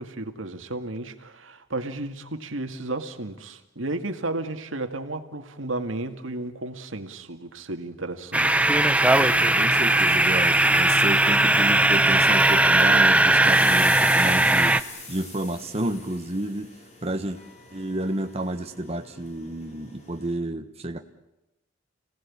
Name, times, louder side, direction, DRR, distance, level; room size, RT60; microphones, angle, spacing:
voice 1, 0.0-8.6, right 2 dB, 80° right, 7 dB, 2.2 m, -33 dB
sound 1, 8.3-14.8, right 2 dB, 5° right, 0.9 m, -19 dB
sound 2, 8.9-20.3, left 3 dB, 35° left, 4.3 m, -43 dB
voice 2, 9.6-14.8 15.1-16.7 17.0-17.4 17.7-21.0, right 1 dB, 30° right, 5 dB, 1.3 m, -30 dB
29.5 x 18.5 x 8.7 m, 0.94 s
head